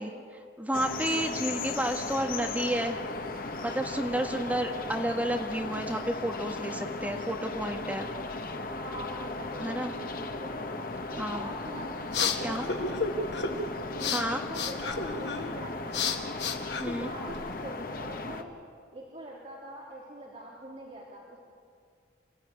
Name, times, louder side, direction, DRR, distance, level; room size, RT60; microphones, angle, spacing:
voice 1, 0.0-3.0 3.6-8.1 9.5-9.9 11.2-11.5 12.4-12.6 14.1-14.4 16.8-17.1, right 1 dB, 10° right, 2 dB, 1.5 m, -31 dB
sound 1, 0.7-18.4, left 3 dB, 50° left, 1.5 m, -37 dB
voice 2, 8.7-10.7 11.1-11.9 12.4-16.5 16.8-18.5 18.9-21.5, right 1 dB, 35° right, -4 dB, 3.3 m, -44 dB
sound 2, 11.6-17.5, left 5 dB, 75° left, 2.0 m, -33 dB
28.5 x 16.5 x 9.7 m, 2.2 s
head